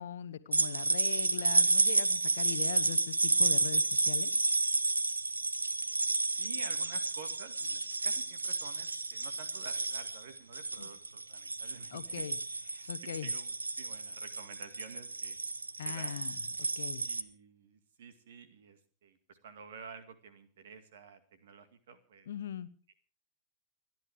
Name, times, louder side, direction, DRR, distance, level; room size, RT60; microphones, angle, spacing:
voice 1, 0.0-4.3 10.8-10.9 11.9-12.4 12.7-13.3 15.8-17.0 22.3-22.7, left 9 dB, 60° left, 14 dB, 1.0 m, -41 dB
sound 1, 0.5-17.2, right 3 dB, 80° right, 0.7 m, -31 dB
voice 2, 6.3-12.3 12.7-15.4 15.8-16.2 17.0-22.3, right 6 dB, 60° right, 10 dB, 2.1 m, -51 dB
29.0 x 10.5 x 3.4 m, 0.40 s
figure-of-eight pair, 90°, 0 cm